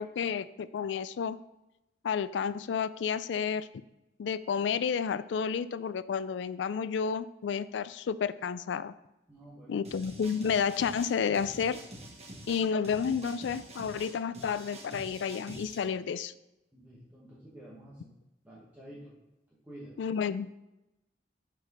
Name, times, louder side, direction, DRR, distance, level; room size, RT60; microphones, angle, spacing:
voice 1, 0.0-1.4 2.0-3.7 4.2-8.9 9.7-11.8 12.5-16.3 20.0-20.5, left 6 dB, 85° left, 15 dB, 0.3 m, -31 dB
voice 2, 9.3-9.8 16.7-18.1 18.4-19.1 19.7-19.9, right 1 dB, 10° right, -8 dB, 1.2 m, -49 dB
sound 1, 9.8-15.8, right 1 dB, 35° right, 1.3 m, -46 dB
5.8 x 4.9 x 5.5 m, 0.94 s
head